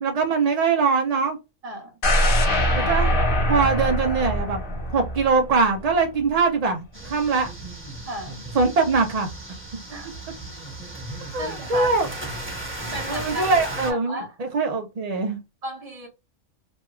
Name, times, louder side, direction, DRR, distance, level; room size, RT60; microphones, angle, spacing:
voice 1, 0.0-1.4 2.7-3.2 3.5-4.6 4.9-7.5 8.5-9.3 11.3-12.1 13.1-15.4, right 4 dB, 60° right, 0.4 m, -22 dB
sound 1, 2.0-6.0 6.4-6.5, equal, 45° left, 1.0 m, -23 dB
sound 2, 6.9-13.9, right 1 dB, 10° right, 1.1 m, -35 dB
voice 2, 8.0-8.5 9.9-10.2 11.4-11.9 12.9-13.5 13.8-14.4 15.6-16.1, equal, 35° right, 0.8 m, -34 dB
3.1 x 2.3 x 3.0 m
omnidirectional pair, 1.4 m